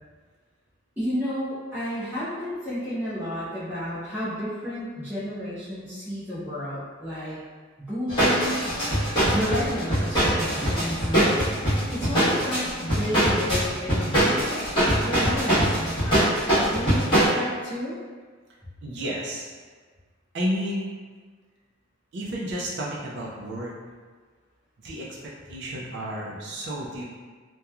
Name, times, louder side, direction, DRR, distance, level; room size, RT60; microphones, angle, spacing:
voice 1, 1.0-7.4 7.8-8.8 9.3-11.4 11.9-14.6 15.0-18.0, equal, 10° right, -14 dB, 0.7 m, -32 dB
sound 1, 8.1-17.2, right 1 dB, 25° left, 1.1 m, -22 dB
voice 2, 18.8-19.5 20.3-20.9 22.1-23.7 24.8-27.0, equal, 60° right, -4 dB, 0.4 m, -31 dB
2.9 x 2.2 x 2.3 m, 1.5 s
head